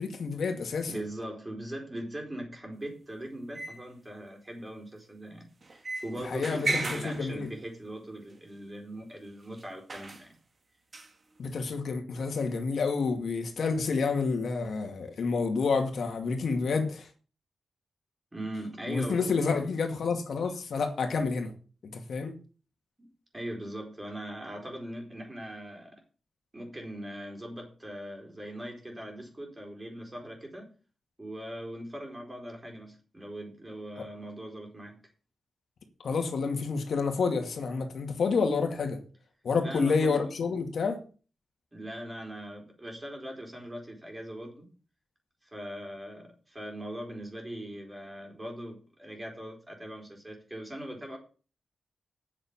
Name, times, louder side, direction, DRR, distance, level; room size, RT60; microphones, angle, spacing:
voice 1, 0.0-0.9 6.2-7.5 11.4-17.1 18.9-21.5 21.9-22.3 34.0-34.1 36.0-39.0 39.4-41.0, left 4 dB, 70° left, 2.3 m, -29 dB
voice 2, 0.9-10.4 18.3-19.6 23.0-23.1 23.3-26.0 26.5-30.7 31.2-35.0 39.6-40.3 40.8-40.9 41.7-44.7 45.4-51.2, right 1 dB, 20° right, 4.4 m, -40 dB
sound 1, 3.5-3.9 5.6-7.7 8.3-8.4 9.6-9.7 9.9-10.3 10.9-11.1, right 3 dB, 40° right, 2.0 m, -35 dB
8.7 x 7.2 x 7.4 m
wide cardioid pair, 105°, 0 cm